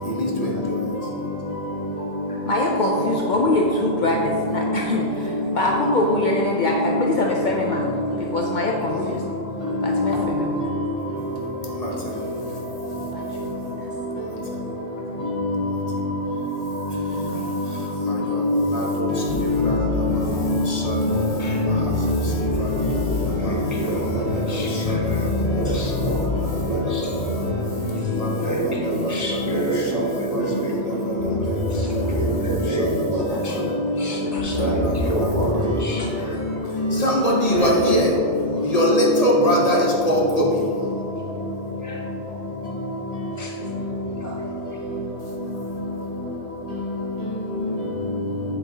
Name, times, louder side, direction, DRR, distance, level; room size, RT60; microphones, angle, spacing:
voice 1, 2.4-9.3 9.8-10.8 13.0-13.9 17.1-17.7 19.6-20.2 20.9-21.4 27.8-27.9 31.1-32.2 33.3-33.8 34.3-34.7, left 2 dB, 55° left, -1 dB, 0.7 m, -25 dB
voice 2, 18.0-18.6 19.4-19.7 20.1-20.2 20.4-20.7 21.0-21.2 21.5-21.8 34.6-34.7 36.8-38.1 38.7-39.8 40.1-40.4, equal, 40° left, -2 dB, 1.0 m, -19 dB
sound 1, 19.1-30.6 31.2-37.6, left 2 dB, 75° left, 1.3 m, -28 dB
voice 3, 21.2-21.6 22.1-22.2 22.5-22.7 23.0-27.5 27.9-38.7 39.7-39.8 41.2-41.3 41.8-42.4 43.3-43.6 44.2-44.8, right 1 dB, 20° right, -3 dB, 0.5 m, -30 dB
8.0 x 6.2 x 2.8 m, 2.6 s
omnidirectional pair, 1.1 m